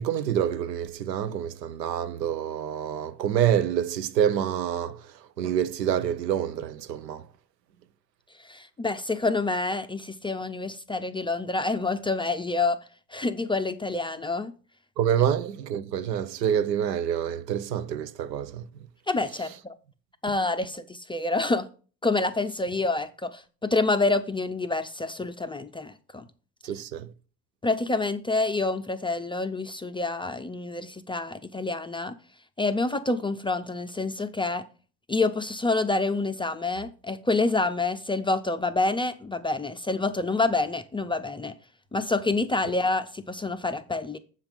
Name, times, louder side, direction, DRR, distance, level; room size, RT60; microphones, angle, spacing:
voice 1, 0.0-7.2 15.0-18.7 26.6-27.1, right 9 dB, 80° right, 0.6 m, -27 dB
voice 2, 8.4-12.8 13.1-14.5 19.1-19.8 20.2-21.7 22.0-26.2 27.6-32.2 32.6-34.7 35.1-41.5 41.9-44.2, left 3 dB, 10° left, 0.4 m, -27 dB
7.5 x 5.7 x 5.1 m
figure-of-eight pair, 45°, 50 cm